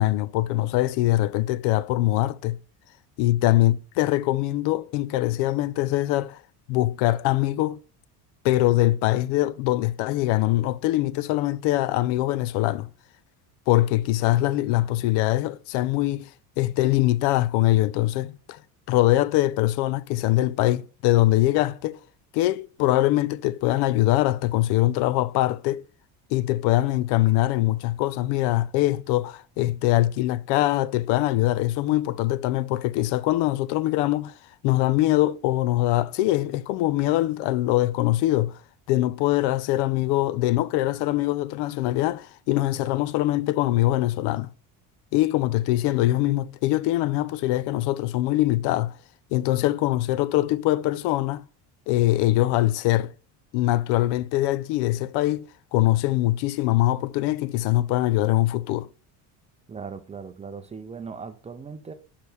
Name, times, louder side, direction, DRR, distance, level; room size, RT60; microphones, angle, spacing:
voice 1, 0.0-2.6 3.2-6.4 6.7-7.8 8.4-12.9 13.7-16.3 16.6-18.6 18.9-22.0 22.3-25.8 26.3-34.3 34.6-38.6 38.9-44.5 45.1-49.0 49.3-51.4 51.9-53.1 53.5-58.9, left 16 dB, 75° left, 0.5 m, -23 dB
voice 2, 59.7-61.9, right 5 dB, 15° right, 0.4 m, -38 dB
6.3 x 5.7 x 3.4 m
cardioid pair, 140°, 41 cm